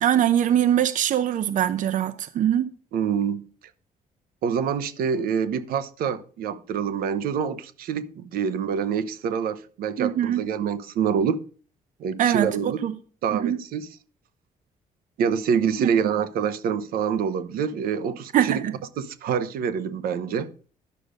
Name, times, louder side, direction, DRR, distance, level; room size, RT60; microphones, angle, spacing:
voice 1, 0.0-2.7 10.0-10.4 12.2-12.9 13.3-13.6 15.8-15.9 18.3-18.7, right 10 dB, 60° right, 0.7 m, -22 dB
voice 2, 2.9-3.4 4.4-11.4 12.0-12.8 13.2-13.9 15.2-18.6 19.0-20.5, right 7 dB, 85° right, 0.9 m, -26 dB
11.0 x 6.7 x 5.0 m
cardioid pair, 120°, 15 cm